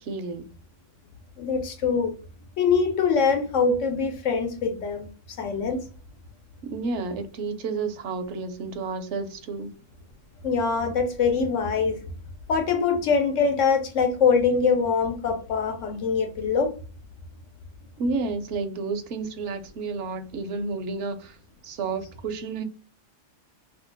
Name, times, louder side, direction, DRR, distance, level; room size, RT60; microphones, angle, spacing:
voice 1, 0.0-0.4 6.6-9.7 18.0-21.4 21.6-22.6, right 4 dB, 70° right, 0.9 m, -31 dB
voice 2, 1.4-2.1 2.6-5.1 5.4-5.8 10.4-12.0 12.5-16.7, left 5 dB, 80° left, 1.1 m, -23 dB
2.8 x 2.3 x 3.8 m
omnidirectional pair, 1.3 m